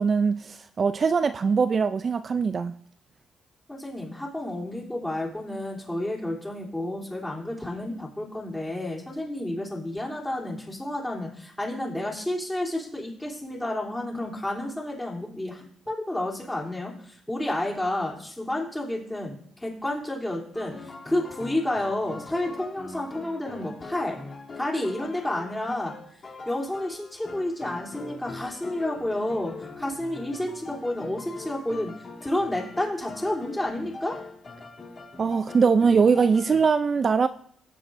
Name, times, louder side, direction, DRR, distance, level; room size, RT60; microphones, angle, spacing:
voice 1, 0.0-2.7 35.2-37.3, right 5 dB, 40° right, 0.4 m, -22 dB
voice 2, 3.7-19.3 19.6-24.2 24.5-25.9 26.4-31.9 32.2-34.2, left 1 dB, 10° left, 3.1 m, -30 dB
sound 1, 20.5-36.6, left 3 dB, 40° left, 2.8 m, -42 dB
15.0 x 7.7 x 2.6 m
cardioid pair, 90°, 0 cm